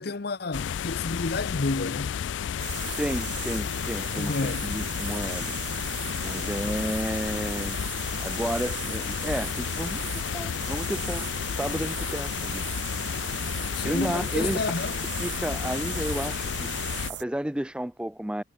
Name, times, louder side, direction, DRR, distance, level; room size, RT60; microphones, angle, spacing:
voice 1, 0.0-2.2 4.2-4.7 13.7-15.0, left 3 dB, 60° left, 0.8 m, -30 dB
sound 1, 0.5-17.1, left 8 dB, 80° left, 0.4 m, -32 dB
sound 2, 2.6-17.2, right 11 dB, 70° right, 1.5 m, -38 dB
voice 2, 3.0-4.3 4.6-5.5 6.2-11.3 11.6-12.6 13.8-14.6 15.2-18.4, right 1 dB, 5° right, 0.4 m, -32 dB
head